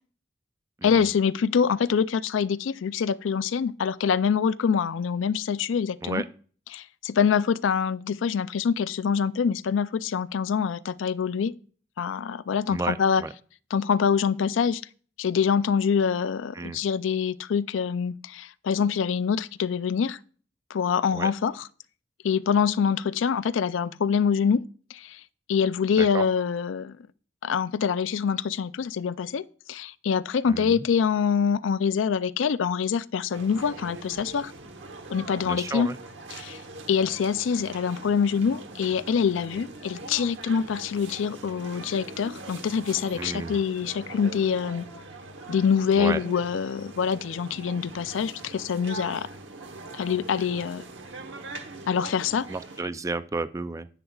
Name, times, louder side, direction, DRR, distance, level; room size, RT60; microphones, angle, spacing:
voice 1, 0.8-6.2 6.7-11.5 12.0-13.2 13.7-14.8 15.2-20.2 20.7-21.5 22.2-24.6 24.9-25.2 25.5-27.0 27.4-34.5 35.1-35.9 36.3-36.6 36.9-44.9 45.5-49.3 49.9-50.8 51.9-52.5, left 6 dB, 85° left, 0.4 m, -25 dB
voice 2, 12.7-13.3 16.5-16.8 21.1-21.3 26.0-26.3 30.5-30.8 35.4-36.0 43.1-43.6 45.9-46.2 52.5-53.9, right 3 dB, 15° right, 0.3 m, -32 dB
sound 1, 33.3-52.8, right 3 dB, 75° right, 1.1 m, -42 dB
10.0 x 8.9 x 2.4 m
head